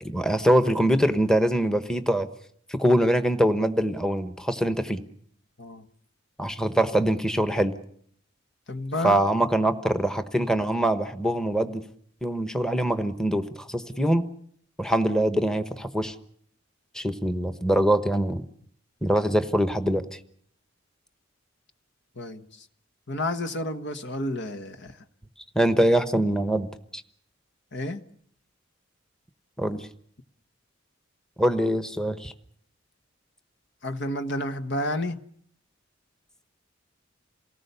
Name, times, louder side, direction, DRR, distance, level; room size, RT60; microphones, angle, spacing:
voice 1, 0.0-2.3 2.7-5.0 6.4-7.7 9.0-11.8 12.2-14.2 14.8-16.1 16.9-18.4 19.0-20.2 25.5-27.0 29.6-29.9 31.4-32.3, right 1 dB, 5° left, 1.1 m, -23 dB
voice 2, 8.7-9.2 22.2-22.4 23.1-25.0 27.7-28.0 33.8-35.2, left 1 dB, 60° left, 1.4 m, -30 dB
28.0 x 19.0 x 6.9 m
head